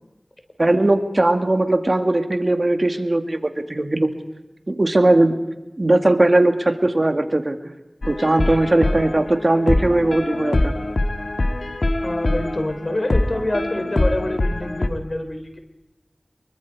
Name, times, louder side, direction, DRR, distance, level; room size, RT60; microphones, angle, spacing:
voice 1, 0.6-4.1 4.7-5.3 5.8-7.6 8.1-10.7, right 2 dB, 50° right, 7 dB, 2.0 m, -19 dB
sound 1, 8.0-14.9, left 1 dB, 65° left, 1.6 m, -23 dB
voice 2, 12.0-15.6, left 1 dB, 50° left, 6 dB, 3.6 m, -26 dB
25.0 x 23.0 x 4.8 m, 1.1 s
wide cardioid pair, 40°, 0 cm